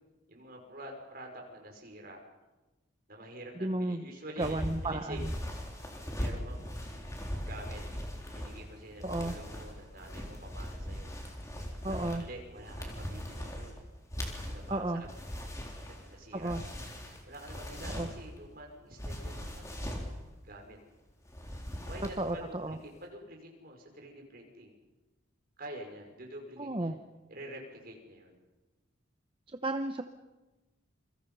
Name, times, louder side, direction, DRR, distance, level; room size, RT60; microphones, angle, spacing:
voice 1, 0.3-2.2 3.1-5.3 6.2-7.8 8.3-11.1 11.9-13.8 14.4-15.2 15.7-16.9 17.2-20.0 20.4-20.8 21.8-24.8 25.6-27.0 27.3-28.4, right 1 dB, 50° right, 1 dB, 5.7 m, -47 dB
voice 2, 3.6-4.0 4.4-5.3 9.0-9.4 11.8-12.2 14.7-15.0 16.3-16.6 17.9-18.1 22.2-22.8 26.6-27.0 29.5-30.0, right 2 dB, 25° right, 6 dB, 0.9 m, -33 dB
sound 1, 4.4-18.4 18.9-20.1 21.3-22.4 22.7-23.0, equal, 15° left, 3.8 m, -40 dB
28.5 x 25.0 x 5.6 m, 1.1 s
head